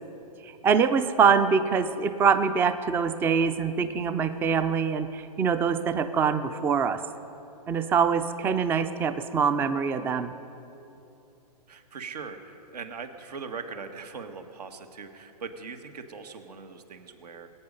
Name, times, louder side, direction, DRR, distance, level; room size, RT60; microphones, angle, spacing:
voice 1, 0.4-7.0 7.7-10.3, right 6 dB, 10° right, 11 dB, 0.4 m, -24 dB
voice 2, 11.7-17.5, right 5 dB, 75° right, 7 dB, 1.4 m, -40 dB
20.5 x 8.8 x 5.3 m, 2.9 s
hypercardioid pair, 135°, 21 cm